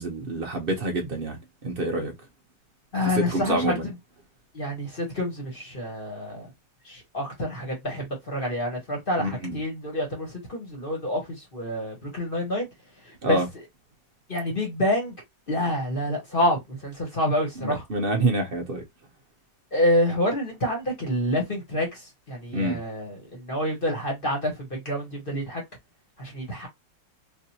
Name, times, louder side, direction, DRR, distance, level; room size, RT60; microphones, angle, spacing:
voice 1, 0.0-2.1 3.1-3.9 9.2-9.6 13.2-13.5 17.6-18.8 22.5-22.8, right 2 dB, 55° right, 0.6 m, -27 dB
voice 2, 2.9-3.9 4.5-6.5 6.8-11.2 11.5-12.7 13.1-13.4 14.3-15.1 15.5-17.8 19.7-25.6 26.2-26.7, left 1 dB, 35° left, 1.2 m, -27 dB
3.7 x 2.6 x 2.7 m
omnidirectional pair, 2.0 m